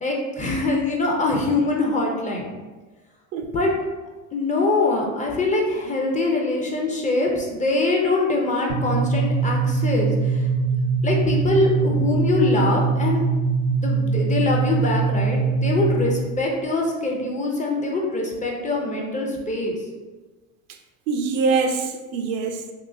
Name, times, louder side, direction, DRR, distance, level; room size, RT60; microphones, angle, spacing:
voice 1, 0.0-2.5 3.5-3.7 4.3-10.5 11.0-13.2 13.8-19.8, left 2 dB, 20° left, -1 dB, 0.5 m, -23 dB
sound 1, 8.7-16.3, right 4 dB, 60° left, 1.2 m, -22 dB
voice 2, 21.1-22.7, right 4 dB, 70° right, 5 dB, 0.6 m, -24 dB
3.7 x 2.7 x 2.6 m, 1.3 s
supercardioid pair, 100°, 42 cm